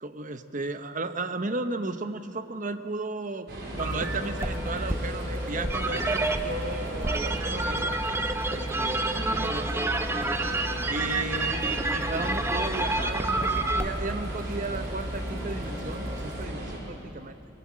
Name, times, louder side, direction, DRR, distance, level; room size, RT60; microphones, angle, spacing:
voice 1, 0.0-3.5 3.8-7.9 8.5-9.9 10.9-11.6 11.9-17.4, right 3 dB, 40° right, 9 dB, 1.0 m, -34 dB
sound 1, 3.5-16.8, right 1 dB, 55° right, 5.6 m, -37 dB
Wind instrument woodwind instrument, 3.8-13.1, left 5 dB, 65° left, 4.2 m, -45 dB
sound 2, 3.8-16.5, right 2 dB, 15° right, 0.9 m, -30 dB
24.5 x 22.0 x 7.5 m, 2.9 s
head